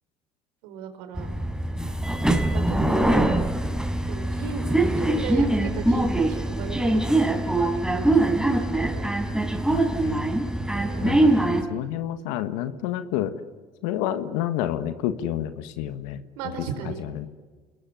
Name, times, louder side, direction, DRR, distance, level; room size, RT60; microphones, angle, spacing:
voice 1, 0.6-1.3 2.5-3.3 4.1-9.1 10.7-11.1 16.4-17.0, right 7 dB, 85° right, 7 dB, 4.8 m, -36 dB
sound 1, 1.2-11.6, right 1 dB, 5° right, 4.9 m, -23 dB
voice 2, 9.7-10.4 11.0-13.3 13.8-16.2 16.8-17.3, left 11 dB, 80° left, 10 dB, 1.5 m, -29 dB
28.5 x 21.0 x 9.5 m, 1.4 s
hypercardioid pair, 70°, 19 cm